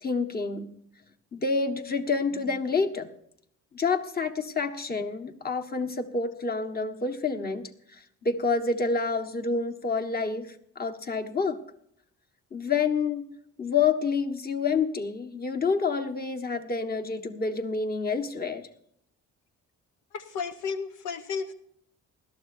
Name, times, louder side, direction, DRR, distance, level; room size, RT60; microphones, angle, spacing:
voice 1, 0.0-0.7 1.3-3.1 3.7-11.6 12.5-13.3 13.6-18.7, left 4 dB, 30° left, 5 dB, 1.5 m, -28 dB
voice 2, 20.1-21.5, left 5 dB, 85° left, 9 dB, 0.9 m, -33 dB
20.0 x 13.0 x 2.7 m, 0.69 s
cardioid pair, 90°, 30 cm